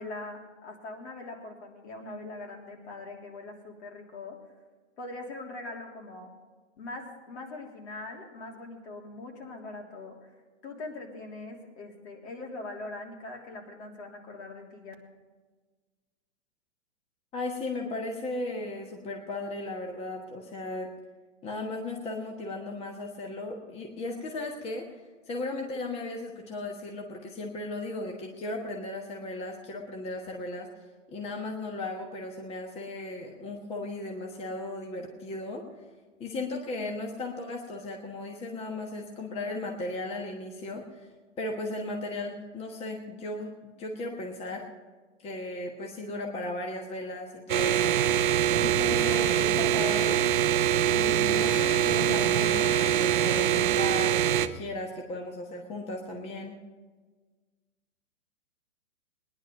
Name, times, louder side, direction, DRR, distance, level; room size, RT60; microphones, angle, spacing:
voice 1, 0.0-4.4 5.0-6.3 6.8-10.3 10.6-14.9, left 2 dB, 60° left, 0 dB, 3.3 m, -42 dB
voice 2, 17.3-20.9 21.4-24.9 25.3-30.7 31.1-35.6 36.2-41.1 41.4-44.6 45.2-48.0 48.6-50.2 50.9-56.6, left 2 dB, 15° left, 1 dB, 1.3 m, -36 dB
sound 1, 47.5-54.5, right 10 dB, 40° right, 0.7 m, -24 dB
18.5 x 10.5 x 5.3 m, 1.4 s
hypercardioid pair, 135°, 38 cm